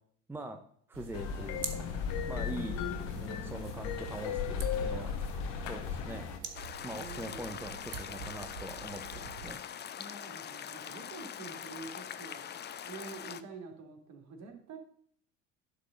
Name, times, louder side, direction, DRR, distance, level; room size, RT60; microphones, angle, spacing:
voice 1, 0.3-0.6 0.9-1.9 2.3-2.8 3.2-5.2 5.6-6.3 6.8-9.6, right 1 dB, 5° right, 6 dB, 0.8 m, -43 dB
sound 1, 0.9-9.5, right 5 dB, 80° right, 1.1 m, -45 dB
sound 2, 1.1-6.4, left 7 dB, 60° left, 1.2 m, -36 dB
voice 2, 2.3-3.5 6.9-7.8 10.0-12.6 12.8-14.8, right 4 dB, 50° right, 2 dB, 2.5 m, -47 dB
sound 3, 6.5-13.4, left 9 dB, 30° left, 0.6 m, -43 dB
11.0 x 3.8 x 6.5 m, 0.62 s
hypercardioid pair, 65°, 37 cm